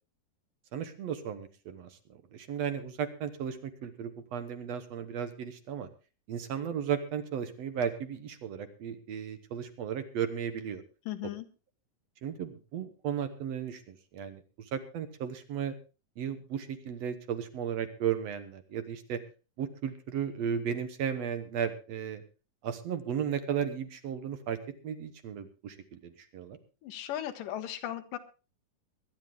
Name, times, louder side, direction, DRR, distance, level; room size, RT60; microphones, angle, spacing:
voice 1, 0.7-1.9 2.3-5.9 6.3-10.8 12.2-14.4 14.7-15.7 16.2-19.2 19.6-22.2 22.6-24.6 24.8-26.6, right 8 dB, 65° right, 10 dB, 1.9 m, -35 dB
voice 2, 11.1-11.5 26.8-28.2, left 12 dB, 85° left, 7 dB, 2.7 m, -37 dB
22.5 x 10.0 x 3.5 m, 0.32 s
omnidirectional pair, 3.7 m